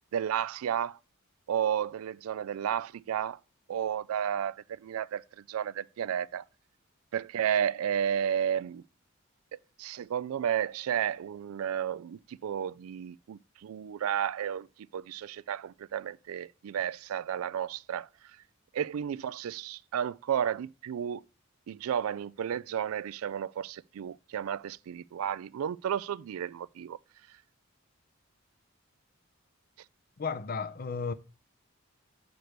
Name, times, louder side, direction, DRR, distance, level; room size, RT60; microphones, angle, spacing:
voice 1, 0.1-1.0 1.5-3.4 3.7-6.4 7.1-8.8 9.5-14.7 14.9-18.1 18.7-21.2 21.7-27.0, right 9 dB, 85° right, 0.3 m, -32 dB
voice 2, 30.2-31.1, left 5 dB, 45° left, 0.5 m, -33 dB
6.6 x 4.5 x 6.6 m
head